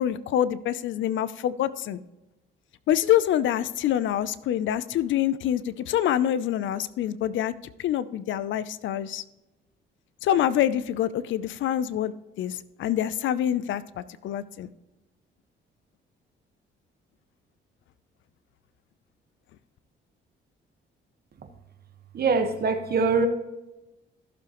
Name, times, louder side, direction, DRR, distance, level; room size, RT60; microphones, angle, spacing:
voice 1, 0.0-2.0 2.9-7.5 7.8-9.2 10.2-12.1 12.4-14.7, left 11 dB, 75° left, 17 dB, 0.5 m, -26 dB
voice 2, 22.1-23.3, right 4 dB, 50° right, 7 dB, 1.4 m, -23 dB
14.5 x 7.0 x 3.0 m, 1.0 s
cardioid pair, 90°, 20 cm